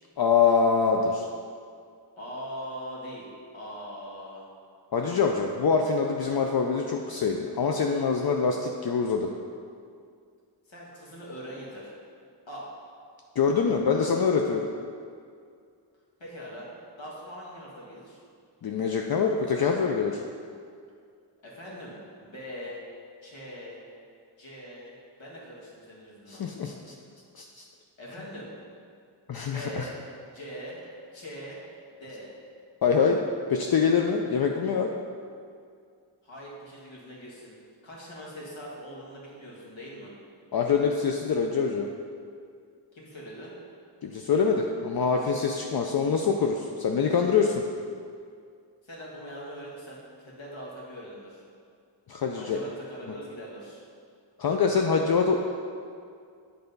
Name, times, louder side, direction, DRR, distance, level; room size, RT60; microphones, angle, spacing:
voice 1, 0.2-1.3 4.9-9.3 13.4-14.7 18.6-20.2 26.3-26.9 27.4-27.6 29.3-29.9 32.8-33.2 33.5-34.9 40.5-41.9 44.0-47.6 52.1-52.6 54.4-55.4, left 5 dB, 55° left, 2 dB, 0.5 m, -24 dB
voice 2, 2.2-3.3 3.5-4.5 10.7-11.9 12.5-12.6 16.2-16.7 17.0-18.2 21.4-22.8 23.2-23.8 24.4-24.9 25.2-26.4 28.0-28.5 29.5-30.0 30.3-30.8 31.1-31.6 31.9-32.3 36.2-37.6 37.8-40.1 42.9-43.5 48.8-51.4 52.3-53.8, equal, 85° left, -5 dB, 1.7 m, -41 dB
7.8 x 3.4 x 5.3 m, 2.2 s
wide cardioid pair, 75°, 45 cm